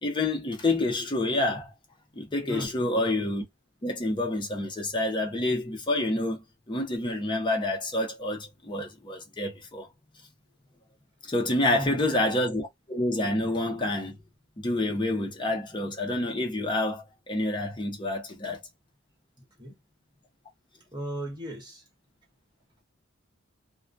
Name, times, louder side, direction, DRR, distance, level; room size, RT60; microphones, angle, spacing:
voice 1, 0.0-1.7 2.1-3.4 3.8-9.9 11.2-14.1 14.6-18.6, left 1 dB, 25° left, 0.6 m, -28 dB
voice 2, 20.9-21.8, equal, 20° right, 1.1 m, -36 dB
2.2 x 2.2 x 2.5 m
head